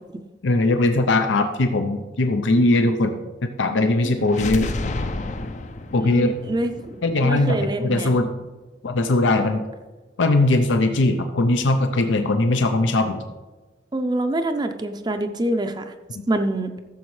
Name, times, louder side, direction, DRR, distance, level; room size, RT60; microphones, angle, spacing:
voice 1, 0.4-4.7 5.9-6.4 7.0-8.3 8.8-9.6 10.2-13.2, left 2 dB, 90° left, 6 dB, 0.6 m, -20 dB
sound 1, 4.2-8.1, left 2 dB, 40° left, 0.5 m, -31 dB
voice 2, 6.0-8.1 13.9-15.9 16.3-16.7, right 1 dB, 20° right, 7 dB, 0.5 m, -25 dB
15.0 x 7.1 x 3.2 m, 1.2 s
head